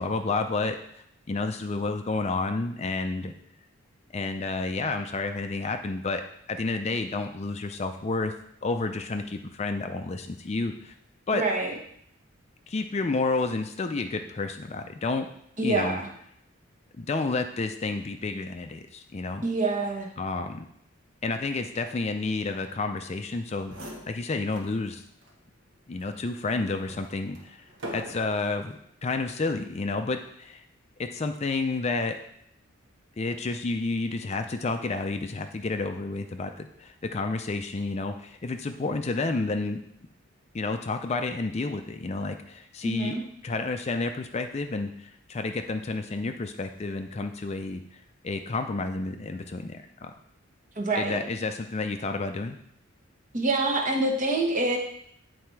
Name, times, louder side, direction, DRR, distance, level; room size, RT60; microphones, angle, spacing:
voice 1, 0.0-3.3 4.1-6.2 6.5-8.3 8.6-10.9 11.3-11.4 12.7-15.3 15.6-16.0 17.0-19.5 20.2-20.7 21.2-25.0 25.9-27.6 27.9-30.6 31.0-32.2 33.2-39.8 40.5-50.1 50.9-52.6, left 3 dB, 30° left, 6 dB, 0.4 m, -30 dB
voice 2, 11.3-11.7 15.6-16.1 19.4-20.1 42.8-43.2 50.8-51.2 53.3-54.8, right 2 dB, 40° right, 2 dB, 1.1 m, -26 dB
sound 1, 23.3-23.4 23.6-24.8 25.2-25.3 26.0-28.6 29.3-29.7, equal, 70° right, 1.4 m, -43 dB
8.5 x 4.2 x 4.6 m, 0.71 s
head